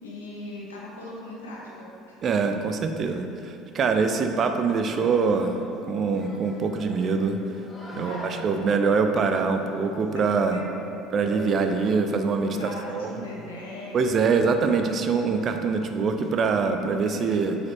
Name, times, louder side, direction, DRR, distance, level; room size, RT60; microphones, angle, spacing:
voice 1, 0.0-2.2 7.9-8.7 10.1-10.2 10.5-11.1 12.5-14.2 16.7-17.3, left 1 dB, 75° left, -5 dB, 1.1 m, -39 dB
voice 2, 2.2-7.4 8.0-10.6 11.1-13.1 13.9-17.6, right 5 dB, 40° right, 6 dB, 0.4 m, -24 dB
sound 1, 4.8-16.7, equal, 20° left, 1.3 m, -43 dB
7.3 x 4.9 x 2.9 m, 2.8 s
figure-of-eight pair, 60°, 0 cm